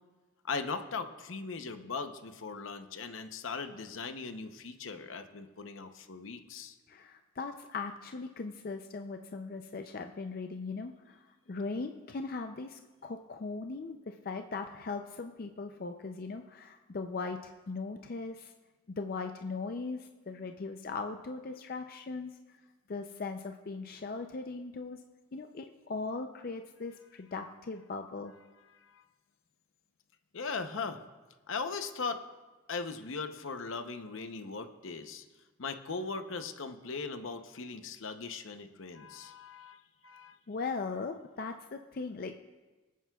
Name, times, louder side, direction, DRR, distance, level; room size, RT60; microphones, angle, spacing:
voice 1, 0.5-6.7 28.9-29.0 30.3-31.0 31.5-32.2 32.7-35.2 35.6-39.8 40.0-40.4, left 4 dB, 75° left, 8 dB, 0.8 m, -39 dB
voice 2, 6.9-11.2 11.5-18.5 18.9-22.3 22.9-25.0 25.3-28.4 40.5-42.4, left 4 dB, 45° left, 5 dB, 0.4 m, -39 dB
24.5 x 9.2 x 2.3 m, 1.2 s
head